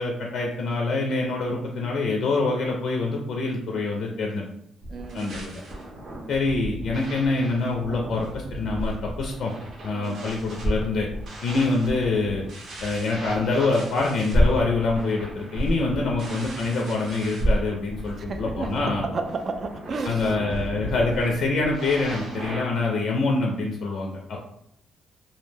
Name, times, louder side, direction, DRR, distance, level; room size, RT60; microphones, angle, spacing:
voice 1, 0.0-4.4 5.1-5.6 6.3-9.5 9.8-11.1 11.4-12.5 12.8-19.1 20.0-24.4, left 3 dB, 65° left, 0 dB, 0.4 m, -25 dB
sound 1, 4.8-22.6, equal, 65° right, 0.7 m, -32 dB
voice 2, 4.9-5.3 6.1-6.3 9.9-10.2 15.9-16.1 18.3-20.3 22.8-23.0, right 4 dB, 45° right, 6 dB, 0.3 m, -32 dB
2.2 x 2.1 x 3.2 m, 0.75 s
cardioid pair, 90°, 0 cm